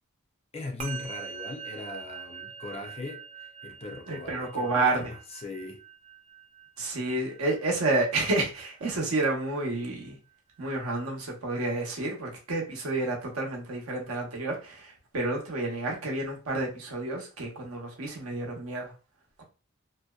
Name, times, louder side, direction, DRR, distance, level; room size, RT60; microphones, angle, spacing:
voice 1, 0.5-5.2 5.4-5.8, left 3 dB, 30° left, 0.4 m, -39 dB
Musical instrument, 0.8-10.3, right 7 dB, 30° right, 0.5 m, -45 dB
voice 2, 4.1-5.1 6.8-10.2 10.6-18.9, right 2 dB, 85° right, 0.8 m, -30 dB
2.6 x 2.1 x 2.2 m
head